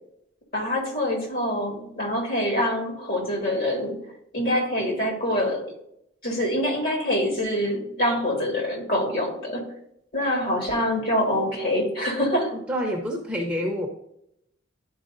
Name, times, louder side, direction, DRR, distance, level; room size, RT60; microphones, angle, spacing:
voice 1, 0.5-4.0 4.3-5.6 6.2-9.6 10.1-12.6, left 1 dB, 50° left, 0 dB, 2.5 m, -25 dB
voice 2, 12.5-13.9, equal, 5° right, 0 dB, 1.0 m, -28 dB
11.5 x 4.6 x 2.7 m, 0.75 s
head